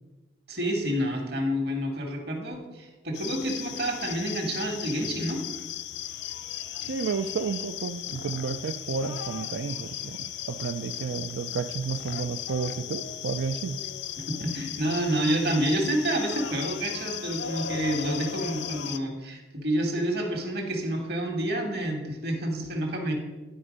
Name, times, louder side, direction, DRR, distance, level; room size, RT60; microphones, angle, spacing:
voice 1, 0.5-5.4 14.2-23.1, right 1 dB, 55° right, 3 dB, 1.4 m, -29 dB
sound 1, 3.1-19.0, left 10 dB, 65° left, 0.4 m, -36 dB
voice 2, 6.9-13.8, right 5 dB, 85° right, 7 dB, 0.4 m, -31 dB
10.0 x 4.4 x 5.1 m, 1.2 s
head